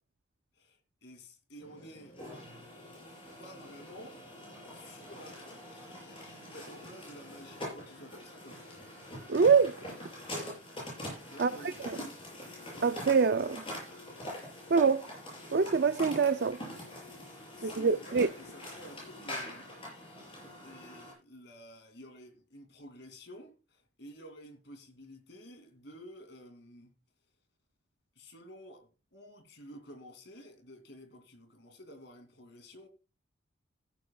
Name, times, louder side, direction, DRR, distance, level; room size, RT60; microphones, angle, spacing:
voice 1, 0.6-2.2 3.0-3.1 3.4-4.2 4.7-8.7 11.3-11.9 17.5-19.7 20.6-26.9 28.2-32.9, equal, 55° left, 2.7 m, -51 dB
sound 1, 1.6-21.1, left 1 dB, 25° left, 7.1 m, -44 dB
voice 2, 9.3-9.8 11.4-11.5 11.9-12.0 12.8-13.6 14.7-15.1 15.5-16.6 17.6-18.3, right 5 dB, 50° right, 0.4 m, -25 dB
15.5 x 11.0 x 2.3 m
head